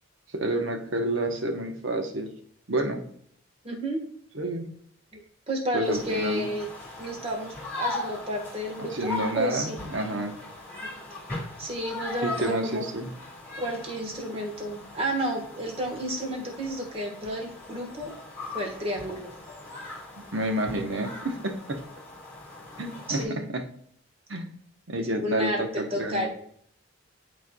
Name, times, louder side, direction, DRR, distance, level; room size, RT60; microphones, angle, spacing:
voice 1, 0.3-2.3 2.7-3.0 4.3-4.7 5.7-6.5 8.9-10.4 12.2-13.1 20.3-21.8 22.8-23.6 24.3-24.5 24.9-26.3, right 1 dB, 60° right, 4 dB, 1.0 m, -29 dB
voice 2, 3.6-4.0 5.1-5.2 5.5-6.7 7.0-9.8 10.7-11.2 11.6-12.8 13.6-18.1 18.5-19.3 23.1-23.5 25.2-26.3, equal, 30° right, 1 dB, 1.3 m, -31 dB
sound 1, 5.8-23.2, left 2 dB, 10° left, 1.8 m, -39 dB
11.0 x 4.5 x 2.3 m, 0.65 s
head